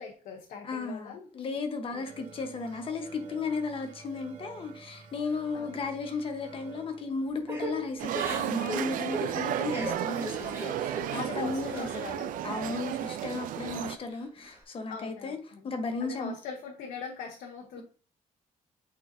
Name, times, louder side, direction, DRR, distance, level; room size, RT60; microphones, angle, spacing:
voice 1, 0.0-1.3 1.9-2.0 5.5-5.7 10.6-12.4 14.9-15.6 16.0-17.8, left 6 dB, 85° left, 1 dB, 1.1 m, -42 dB
voice 2, 0.6-11.9 12.4-15.4 15.6-16.3, left 4 dB, 40° left, 5 dB, 1.1 m, -35 dB
sound 1, 2.0-9.3, right 4 dB, 65° right, 1.4 m, -50 dB
Crying sobbing / Breathing, 7.5-12.1 12.5-13.4 13.8-14.6, right 1 dB, 20° right, 1.4 m, -39 dB
sound 2, 8.0-14.0, right 11 dB, 80° right, 0.4 m, -33 dB
8.2 x 4.3 x 2.7 m, 0.40 s
cardioid pair, 145°, 14 cm